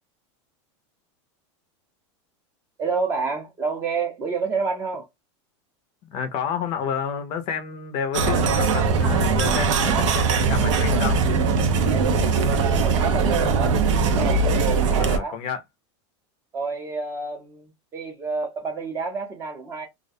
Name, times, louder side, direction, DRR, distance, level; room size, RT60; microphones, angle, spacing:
voice 1, 2.8-5.1 11.9-13.8 14.1-15.4 16.5-19.9, right 4 dB, 15° right, 0.6 m, -29 dB
voice 2, 6.1-11.2 15.0-15.6, left 7 dB, 35° left, 0.5 m, -30 dB
sound 1, 8.1-15.2, right 4 dB, 90° right, 0.6 m, -20 dB
2.3 x 2.1 x 2.6 m
supercardioid pair, 165°, 15 cm